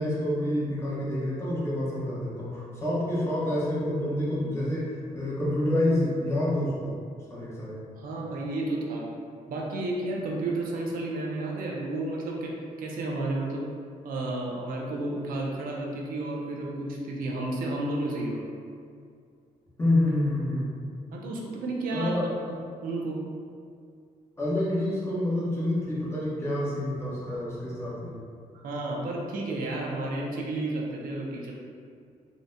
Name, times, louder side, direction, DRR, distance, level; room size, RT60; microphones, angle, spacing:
voice 1, 0.0-7.0 7.3-7.8 19.8-20.7 21.9-22.3 24.4-28.2, left 1 dB, 20° left, -8 dB, 0.9 m, -28 dB
voice 2, 8.0-9.1 9.5-12.5 12.8-13.7 14.0-18.4 21.1-22.2 22.4-23.2 28.6-31.5, right 2 dB, 85° right, -2 dB, 0.5 m, -32 dB
3.8 x 2.1 x 2.6 m, 2.3 s
cardioid pair, 135°, 14 cm